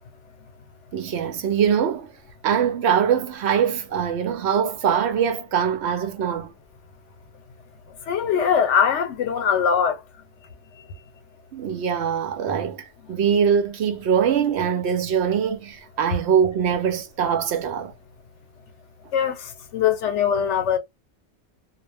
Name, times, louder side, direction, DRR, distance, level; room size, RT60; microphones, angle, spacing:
voice 1, 0.9-2.1 2.4-6.5 11.5-17.9, right 8 dB, 70° right, 0.8 m, -23 dB
voice 2, 8.0-10.0 19.1-20.8, left 7 dB, 80° left, 1.0 m, -21 dB
2.3 x 2.1 x 3.2 m
omnidirectional pair, 1.2 m